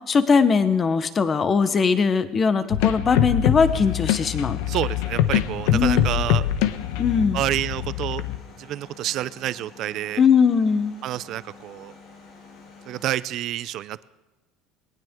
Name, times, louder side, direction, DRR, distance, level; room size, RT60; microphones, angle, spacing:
voice 1, 0.1-4.6 5.7-6.1 7.0-7.4 10.2-10.9, left 5 dB, 20° left, 12 dB, 0.9 m, -20 dB
sound 1, 2.7-8.4, left 11 dB, 85° left, 1.0 m, -24 dB
sound 2, 3.5-13.1, left 4 dB, 65° left, 6.2 m, -49 dB
voice 2, 4.7-6.4 7.3-8.2 8.6-10.2 11.0-11.9 12.9-14.0, right 13 dB, 45° right, 16 dB, 0.5 m, -28 dB
20.5 x 18.5 x 3.7 m, 1.1 s
cardioid pair, 160°, 0 cm